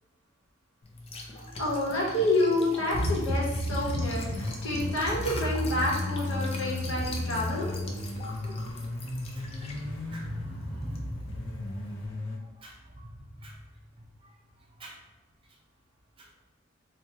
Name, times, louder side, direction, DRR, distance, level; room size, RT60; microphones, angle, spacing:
Liquid, 0.8-12.1, left 2 dB, 30° left, 0.4 m, -43 dB
voice 1, 1.3-7.8 8.4-8.5, left 1 dB, 70° left, -4 dB, 0.9 m, -29 dB
sound 1, 2.9-12.4, left 1 dB, 90° left, 0.5 m, -33 dB
voice 2, 8.3-11.8 12.6-13.1 13.3-13.6 14.8-15.0 16.2-16.3, equal, 25° right, -1 dB, 0.5 m, -41 dB
2.8 x 2.1 x 3.3 m, 1.1 s
head